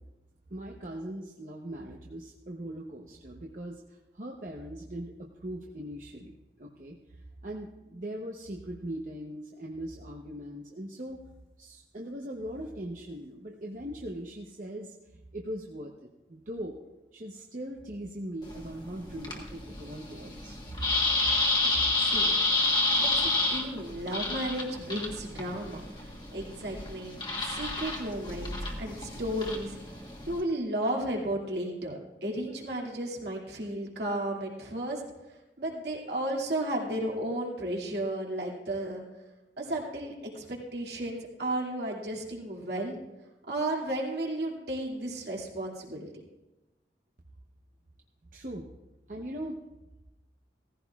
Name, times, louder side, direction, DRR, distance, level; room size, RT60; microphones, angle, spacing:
voice 1, 0.5-11.2 11.6-16.8 17.1-21.0 48.3-48.7 49.1-49.6, right 1 dB, 45° right, 0 dB, 0.8 m, -40 dB
sound 1, 18.4-30.4, left 2 dB, 25° left, 1.6 m, -30 dB
voice 2, 22.0-22.4 23.0-25.8 26.3-27.2 27.4-29.8 30.3-35.0 35.6-39.0 39.6-43.0 43.5-46.1, right 1 dB, 70° right, -1 dB, 2.3 m, -33 dB
17.5 x 15.0 x 2.4 m, 1.0 s
head